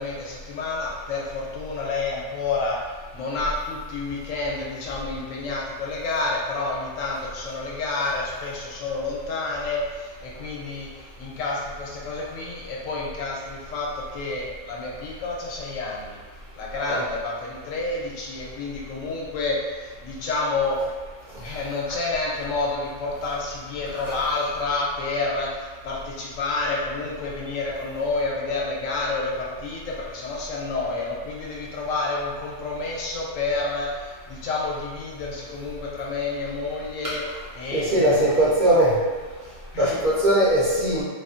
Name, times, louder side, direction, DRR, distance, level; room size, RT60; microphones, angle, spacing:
voice 1, 0.0-16.2 16.5-20.8 21.4-37.2 37.5-38.6 39.7-40.0, left 3 dB, 80° left, -3 dB, 1.0 m, -29 dB
voice 2, 37.7-39.0 39.8-41.0, right 1 dB, 50° right, -9 dB, 0.7 m, -20 dB
2.5 x 2.4 x 2.4 m, 1.4 s
omnidirectional pair, 1.3 m